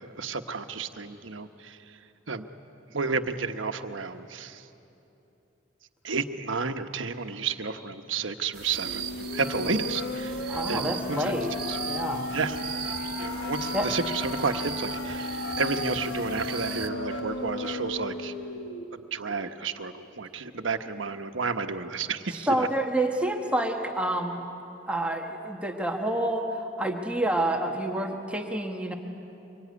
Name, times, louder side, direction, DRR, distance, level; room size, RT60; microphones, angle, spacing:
voice 1, 0.0-2.0 2.3-2.5 2.9-4.7 6.0-11.3 11.7-11.8 12.3-12.6 13.2-18.3 18.9-22.7, right 4 dB, 90° right, 7 dB, 1.2 m, -31 dB
sound 1, 8.5-16.9, right 8 dB, 55° right, 1.4 m, -38 dB
sound 2, 8.8-18.8, left 2 dB, 75° left, 1.7 m, -34 dB
voice 2, 10.5-11.5 11.9-12.3 13.7-13.9 22.4-24.4 24.9-28.9, right 1 dB, 5° right, 2 dB, 1.5 m, -28 dB
25.0 x 23.0 x 9.6 m, 2.9 s
head